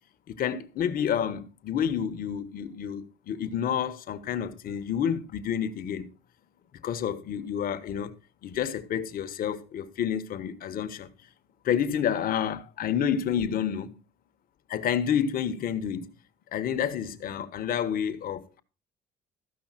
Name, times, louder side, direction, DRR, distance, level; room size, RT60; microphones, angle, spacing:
voice 1, 0.3-6.1 6.8-8.2 8.4-11.1 11.6-14.0 14.7-16.1 16.5-18.6, left 8 dB, 60° left, 1.4 m, -29 dB
14.5 x 5.8 x 5.9 m
cardioid pair, 110°, 17 cm